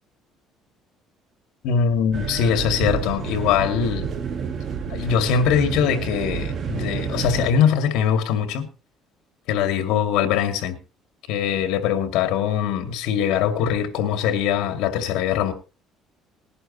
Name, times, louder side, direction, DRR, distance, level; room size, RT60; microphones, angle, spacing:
voice 1, 1.6-4.1 4.9-8.7 9.5-10.8 11.3-15.5, left 8 dB, 80° left, 8 dB, 2.3 m, -22 dB
sound 1, 2.1-7.5, right 6 dB, 40° right, 1.5 m, -29 dB
20.0 x 11.5 x 2.9 m, 0.31 s
cardioid pair, 140°, 0 cm